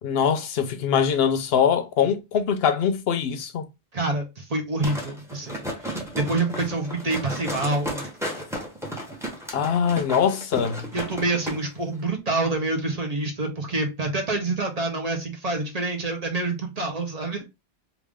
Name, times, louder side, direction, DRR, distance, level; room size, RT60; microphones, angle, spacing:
voice 1, 0.0-3.6 9.5-10.8, left 7 dB, 75° left, 0.8 m, -23 dB
voice 2, 3.9-5.5 5.8-8.1 10.9-17.5, right 2 dB, 40° right, 0.8 m, -27 dB
sound 1, 4.8-11.6 11.9-12.0, equal, 5° right, 0.8 m, -33 dB
3.4 x 2.4 x 3.4 m
omnidirectional pair, 1.1 m